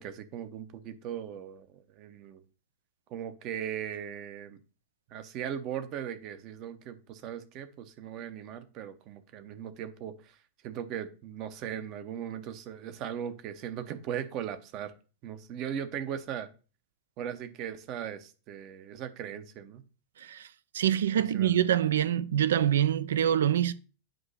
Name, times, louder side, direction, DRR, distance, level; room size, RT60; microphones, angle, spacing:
voice 1, 0.0-2.4 3.1-4.6 5.1-10.4 10.6-14.9 15.2-16.5 17.2-19.8 21.2-21.6, right 9 dB, 40° right, 0.8 m, -38 dB
voice 2, 20.7-23.7, right 10 dB, 65° right, 0.4 m, -25 dB
7.8 x 2.9 x 5.5 m
figure-of-eight pair, 90°, 0 cm